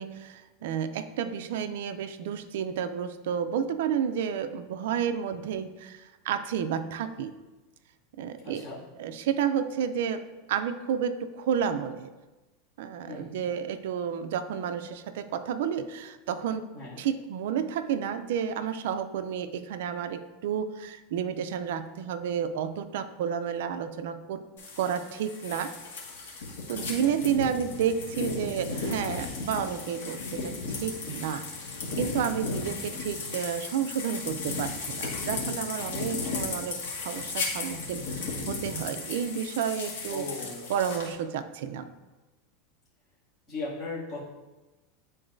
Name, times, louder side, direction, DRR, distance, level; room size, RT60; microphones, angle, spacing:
voice 1, 0.0-7.3 8.2-8.7 9.0-12.1 12.8-16.7 17.0-24.5 24.8-25.7 26.7-31.5 32.0-40.3 40.7-41.9, right 8 dB, 70° right, 8 dB, 0.4 m, -31 dB
voice 2, 8.4-8.8 13.1-13.5 16.7-17.0 26.9-27.1 32.5-32.9 40.1-40.7 43.5-44.2, left 3 dB, 30° left, -9 dB, 2.1 m, -38 dB
sound 1, 24.6-41.1, left 4 dB, 90° left, 1.7 m, -35 dB
9.8 x 3.9 x 2.6 m, 1.1 s
supercardioid pair, 160°, 0 cm